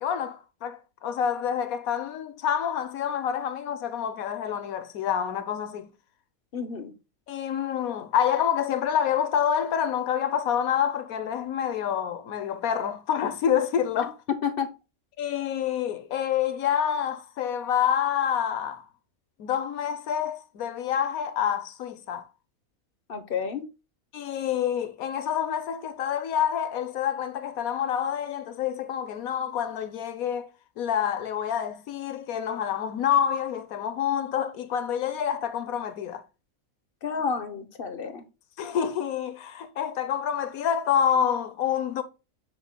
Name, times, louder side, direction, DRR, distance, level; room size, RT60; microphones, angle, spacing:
voice 1, 0.0-5.9 7.3-14.2 15.2-18.9 19.4-22.3 24.1-30.5 30.8-36.2 38.6-42.0, left 9 dB, 80° left, 1.3 m, -27 dB
voice 2, 6.5-6.9 14.4-14.7 23.1-23.6 37.0-38.2, left 6 dB, 45° left, 1.0 m, -30 dB
6.6 x 6.4 x 2.2 m
omnidirectional pair, 1.5 m